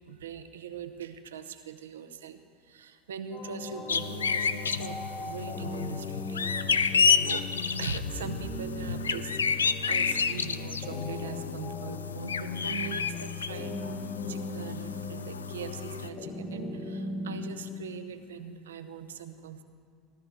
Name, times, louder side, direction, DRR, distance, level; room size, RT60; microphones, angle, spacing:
voice 1, 0.0-6.4 6.7-7.5 7.8-19.6, right 6 dB, 80° right, 9 dB, 0.8 m, -42 dB
sound 1, 3.3-17.5, left 1 dB, 70° left, 3.5 m, -39 dB
sound 2, 3.9-16.1, left 6 dB, 90° left, 0.4 m, -30 dB
19.0 x 12.0 x 3.6 m, 2.4 s
hypercardioid pair, 75°, 0 cm